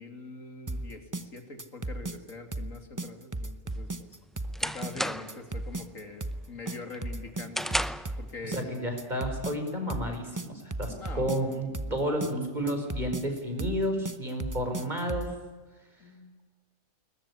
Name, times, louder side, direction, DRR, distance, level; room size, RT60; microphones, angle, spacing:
voice 1, 0.0-4.2 4.6-8.7 10.9-12.0 16.0-16.4, left 3 dB, 80° left, 6 dB, 3.5 m, -44 dB
sound 1, 0.7-15.4, right 2 dB, 15° right, 0.8 m, -36 dB
sound 2, 3.7-5.5 5.9-6.3 6.7-8.2, equal, ahead, 0.3 m, -33 dB
voice 2, 8.5-15.3, equal, 35° right, 5 dB, 5.2 m, -31 dB
21.5 x 21.0 x 9.9 m, 1.2 s
omnidirectional pair, 1.4 m